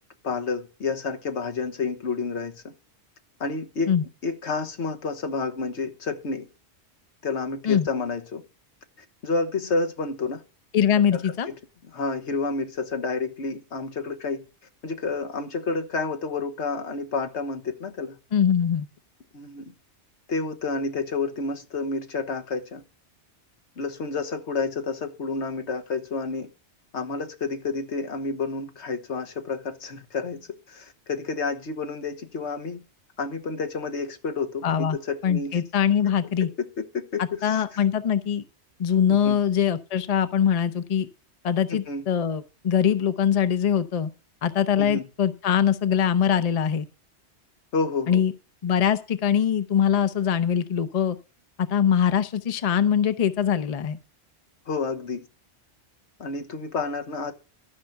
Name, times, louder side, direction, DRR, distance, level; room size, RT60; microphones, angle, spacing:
voice 1, 0.2-2.7 3.4-3.9 4.2-6.5 7.2-8.4 9.2-10.4 11.1-11.5 11.9-14.4 14.8-18.2 19.3-19.7 20.3-22.8 23.8-26.5 26.9-32.8 33.2-35.6 36.6-37.8 39.1-39.4 41.7-42.0 44.8-45.0 47.7-48.2 54.7-55.2 56.2-57.3, left 4 dB, 80° left, 1.5 m, -30 dB
voice 2, 10.7-11.5 18.3-18.9 34.6-35.0 35.2-36.5 37.2-38.4 38.8-41.1 41.4-44.1 44.4-46.9 48.1-48.3 48.6-51.2 51.7-54.0, left 8 dB, 40° left, 0.7 m, -22 dB
12.5 x 5.8 x 6.6 m
omnidirectional pair, 1.2 m